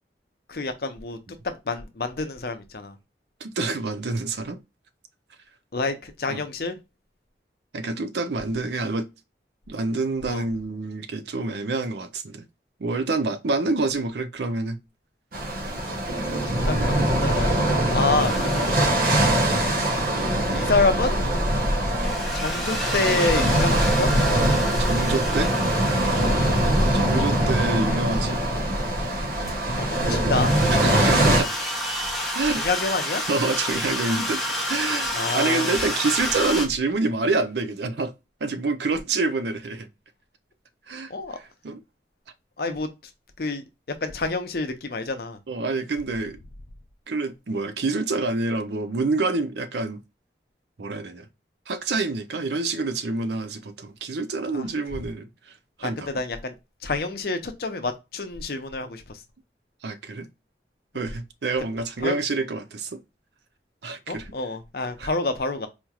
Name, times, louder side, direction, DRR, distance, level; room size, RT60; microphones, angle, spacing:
voice 1, 0.5-1.2 1.4-2.9 5.7-6.8 10.2-10.4 16.7-17.5 17.9-18.3 20.0-20.1 20.5-21.1 22.3-24.1 26.2-26.4 29.9-30.6 32.6-33.2 35.1-35.7 41.1-41.4 42.6-42.9 43.4-43.6 44.0-45.4 54.5-54.6 55.8-56.5 56.8-59.0 62.0-62.1 64.1-65.7, left 3 dB, 55° left, 0.6 m, -27 dB
voice 2, 3.4-4.6 6.3-6.4 7.7-9.1 9.7-12.4 12.8-14.8 18.8-18.9 21.5-21.7 24.8-25.5 26.9-28.4 30.7-31.5 32.3-32.6 33.3-34.4 34.7-38.1 38.4-39.9 40.9-41.8 45.5-46.4 47.1-50.0 50.8-51.3 51.7-56.2 59.8-60.3 60.9-63.0 63.8-64.3 65.0-65.1, right 3 dB, 70° right, 0.5 m, -27 dB
sound 1, 15.3-31.4, right 1 dB, 50° right, 0.9 m, -22 dB
sound 2, 18.2-20.7 22.0-28.1 29.5-29.6 30.3-36.7, left 1 dB, ahead, 0.8 m, -31 dB
4.2 x 3.0 x 2.3 m
head